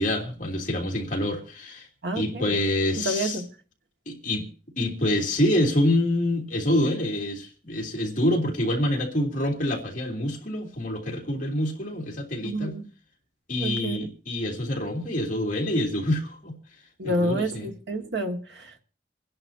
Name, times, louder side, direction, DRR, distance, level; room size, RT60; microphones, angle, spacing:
voice 1, 0.0-1.9 2.1-3.4 4.1-4.5 4.8-12.8 13.5-16.5 17.0-17.7, left 1 dB, 45° left, 2.9 m, -26 dB
voice 2, 2.0-2.5 3.0-3.5 12.4-12.9 13.6-14.0 17.0-18.8, right 1 dB, 90° right, 2.1 m, -29 dB
27.5 x 10.5 x 2.8 m
head